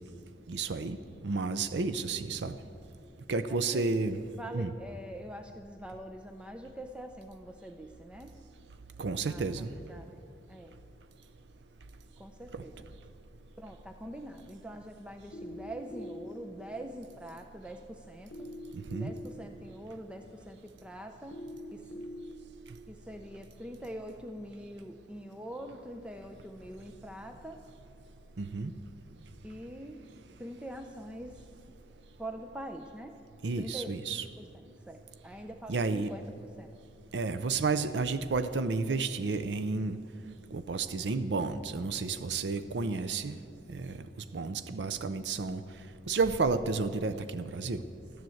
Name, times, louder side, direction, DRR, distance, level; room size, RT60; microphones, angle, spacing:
voice 1, 0.5-1.0 1.2-2.6 3.3-4.2 4.5-4.7 9.0-9.7 12.5-12.6 18.9-19.1 28.4-28.7 33.4-34.2 35.7-36.1 37.1-40.0 40.5-43.4 43.7-44.0 44.3-45.6 46.1-47.8, right 4 dB, 80° right, 11 dB, 0.6 m, -31 dB
voice 2, 3.5-3.9 4.4-8.4 9.2-10.2 10.5-10.8 12.2-13.0 13.6-18.5 19.0-22.0 22.9-27.6 29.4-30.0 30.4-31.4 32.2-33.2 33.6-33.9 34.4-36.7, equal, 5° right, 5 dB, 0.5 m, -44 dB
sound 1, 15.3-16.3 18.3-19.3 21.3-22.3, left 1 dB, 80° left, 0.9 m, -42 dB
13.5 x 10.5 x 7.8 m, 2.5 s
head